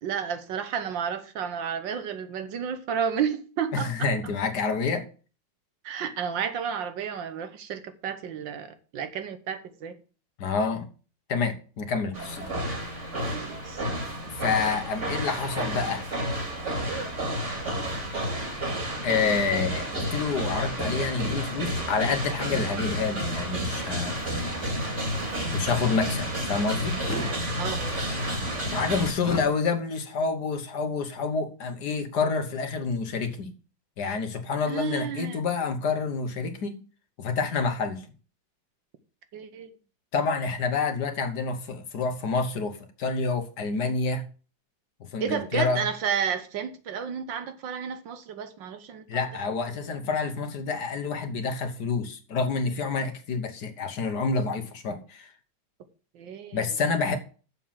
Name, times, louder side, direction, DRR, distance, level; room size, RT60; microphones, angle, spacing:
voice 1, 0.0-4.1 5.8-9.9 13.3-13.8 22.5-22.7 27.1-27.9 34.6-35.4 39.3-39.7 45.2-49.3 56.2-56.7, right 7 dB, 70° right, 1.7 m, -32 dB
voice 2, 3.7-5.0 10.4-10.9 11.3-12.6 14.3-16.1 19.0-24.2 25.5-27.0 28.7-33.5 34.0-36.8 37.2-38.1 40.1-44.3 45.0-45.9 49.1-55.3 56.5-57.2, left 4 dB, 60° left, 1.6 m, -28 dB
sound 1, 12.1-29.1, equal, 35° right, 2.7 m, -30 dB
sound 2, 27.0-27.3 29.2-29.5, left 1 dB, 10° left, 1.2 m, -32 dB
7.3 x 6.7 x 7.4 m
omnidirectional pair, 2.1 m